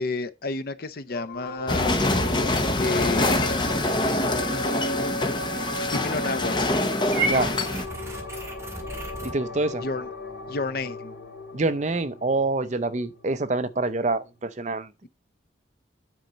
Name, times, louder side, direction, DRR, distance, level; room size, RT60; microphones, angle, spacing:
voice 1, 0.0-1.9 2.8-5.3 5.9-6.6 9.8-10.1 10.5-11.1, left 3 dB, 50° left, 0.6 m, -31 dB
sound 1, 1.1-14.0, left 1 dB, 75° left, 2.6 m, -36 dB
sound 2, 1.7-7.9, left 2 dB, 25° left, 0.8 m, -25 dB
Purr / Meow, 7.1-9.3, right 3 dB, 15° right, 2.1 m, -32 dB
voice 2, 7.2-7.6 9.2-9.8 11.5-14.9, right 3 dB, 40° right, 0.6 m, -26 dB
9.4 x 4.3 x 5.0 m
head